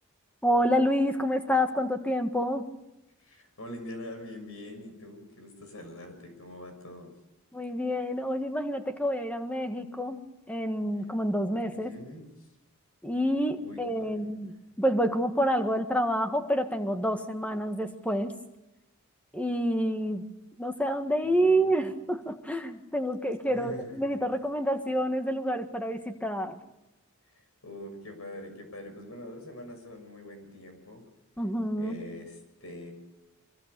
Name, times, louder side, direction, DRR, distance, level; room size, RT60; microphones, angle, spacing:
voice 1, 0.4-2.7 7.5-11.9 13.0-18.3 19.3-20.3 20.6-26.6 31.4-32.0, equal, 5° left, 6 dB, 1.7 m, -28 dB
voice 2, 3.2-7.1 11.7-12.3 13.6-14.2 21.2-21.7 23.5-24.1 27.3-31.0 31.8-32.9, left 1 dB, 70° left, 6 dB, 6.7 m, -44 dB
24.5 x 24.5 x 6.9 m, 0.96 s
head